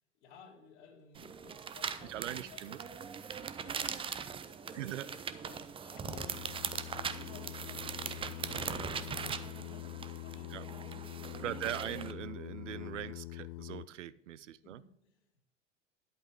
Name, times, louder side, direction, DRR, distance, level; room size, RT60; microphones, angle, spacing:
voice 1, 0.1-2.6 3.5-6.4 6.7-11.6 14.1-15.4, left 5 dB, 60° left, 2 dB, 2.5 m, -59 dB
sound 1, 1.2-12.1, right 7 dB, 15° right, 0.5 m, -41 dB
voice 2, 2.1-2.8 4.7-5.1 10.5-10.6 11.4-14.8, right 12 dB, 75° right, 17 dB, 0.6 m, -41 dB
Singing, 6.0-13.9, left 16 dB, 45° left, 0.4 m, -45 dB
11.0 x 8.1 x 4.7 m, 0.73 s
figure-of-eight pair, 80°, 37 cm